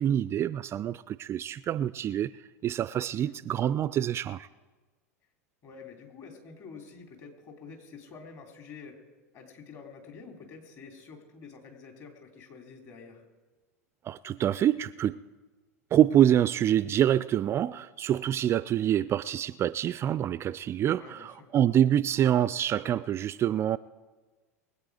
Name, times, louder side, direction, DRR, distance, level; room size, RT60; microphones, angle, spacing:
voice 1, 0.0-2.3 2.6-4.5 14.0-15.2 15.9-23.8, right 10 dB, 30° right, 0.3 m, -26 dB
voice 2, 3.1-3.4 5.6-9.0 9.3-13.2 20.9-21.5, left 5 dB, 40° left, 3.2 m, -48 dB
22.5 x 8.4 x 4.8 m
hypercardioid pair, 85°, 8 cm